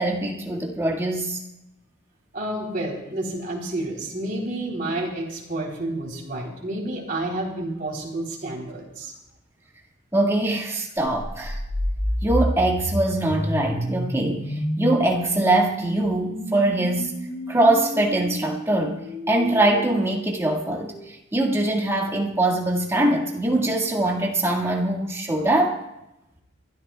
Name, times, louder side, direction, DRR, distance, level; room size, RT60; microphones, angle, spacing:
voice 1, 0.0-1.4 10.1-11.6 12.2-17.1 17.5-19.0 19.3-25.8, right 1 dB, 15° right, -1 dB, 1.7 m, -23 dB
voice 2, 2.3-9.1, right 1 dB, 45° right, -2 dB, 3.3 m, -30 dB
sound 1, 11.1-21.0, equal, 5° left, 2.5 m, -30 dB
28.0 x 13.0 x 2.3 m, 0.91 s
head